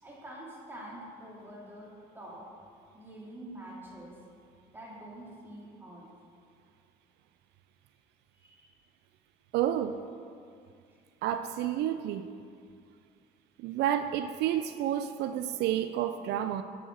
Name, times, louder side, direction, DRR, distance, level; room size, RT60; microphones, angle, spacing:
voice 1, 0.0-2.5 2.9-4.2 4.7-6.1 8.3-8.8, right 1 dB, 15° right, -5 dB, 2.7 m, -46 dB
voice 2, 9.5-10.0 11.2-12.3 13.6-16.6, right 11 dB, 80° right, 10 dB, 0.4 m, -30 dB
7.9 x 7.7 x 6.3 m, 2.3 s
cardioid pair, 110°, 17 cm